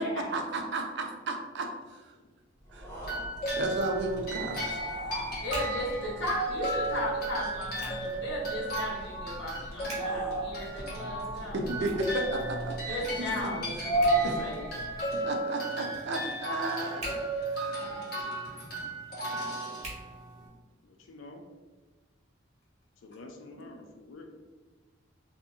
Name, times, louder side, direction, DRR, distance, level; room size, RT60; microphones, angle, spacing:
voice 1, 0.0-2.1 2.7-2.9 3.6-4.8 11.5-13.3 13.8-13.9 14.2-14.4 15.1-17.9, right 2 dB, 65° right, 3 dB, 0.5 m, -34 dB
sound 1, 2.7-15.2, right 2 dB, 15° left, 0.7 m, -36 dB
sound 2, 3.0-20.4, right 2 dB, 50° left, 1.4 m, -35 dB
Hands, 3.2-20.9, right 1 dB, 35° right, 1.3 m, -50 dB
voice 2, 5.4-11.6 12.9-14.7 23.5-23.7, left 1 dB, 65° left, -5 dB, 1.1 m, -36 dB
voice 3, 17.7-18.2 20.8-21.4 23.0-24.3, left 2 dB, 85° left, 4 dB, 0.5 m, -48 dB
2.8 x 2.6 x 3.6 m, 1.3 s
head